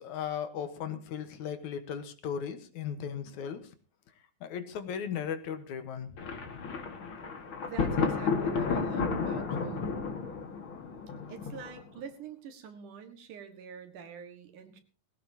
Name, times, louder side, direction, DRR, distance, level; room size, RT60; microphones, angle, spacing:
voice 1, 0.0-3.7 4.4-6.7, left 8 dB, 70° left, 9 dB, 2.5 m, -37 dB
Thunder, 6.2-12.0, left 5 dB, 45° left, 2.4 m, -32 dB
voice 2, 7.6-9.9 11.3-14.8, right 7 dB, 75° right, 7 dB, 3.2 m, -45 dB
19.5 x 16.5 x 2.8 m, 0.34 s
omnidirectional pair, 3.7 m